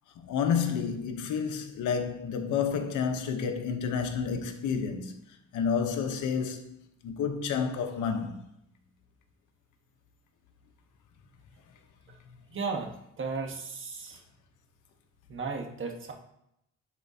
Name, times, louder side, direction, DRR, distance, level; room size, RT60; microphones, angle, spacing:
voice 1, 0.2-5.2 5.5-6.8 7.0-8.4, left 6 dB, 85° left, 0.9 m, -30 dB
voice 2, 12.5-12.9 13.2-14.2 15.3-16.1, right 4 dB, 40° right, 1.3 m, -34 dB
10.5 x 4.3 x 2.8 m
cardioid pair, 90°, 30 cm